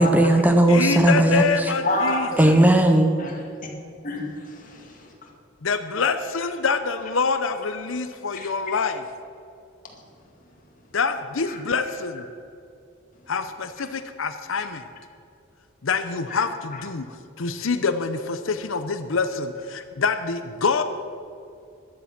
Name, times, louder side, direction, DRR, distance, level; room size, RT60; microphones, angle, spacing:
voice 1, 0.0-1.7 2.4-3.1, right 1 dB, 10° right, 5 dB, 0.7 m, -17 dB
voice 2, 0.7-2.3 5.6-9.0 10.9-12.2 13.3-14.8 15.8-17.0 17.4-20.8, left 5 dB, 80° left, 9 dB, 0.7 m, -25 dB
voice 3, 1.8-2.4 3.2-3.4 4.0-5.3 8.4-8.5 11.5-11.6 14.6-14.7 16.3-16.4 16.7-16.9, left 1 dB, 40° left, 1 dB, 2.1 m, -29 dB
14.0 x 11.0 x 6.0 m, 2.5 s
head